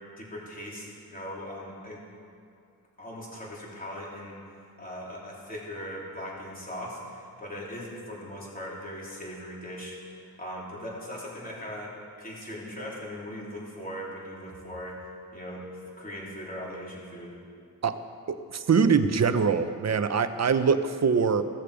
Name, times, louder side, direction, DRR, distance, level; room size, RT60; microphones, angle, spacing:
voice 1, 0.2-2.0 3.0-4.4 4.8-15.0 15.3-17.3, equal, 25° left, -5 dB, 3.7 m, -39 dB
voice 2, 18.3-21.4, right 6 dB, 45° right, 10 dB, 0.8 m, -23 dB
16.0 x 13.5 x 5.1 m, 2.4 s
wide cardioid pair, 135°, 36 cm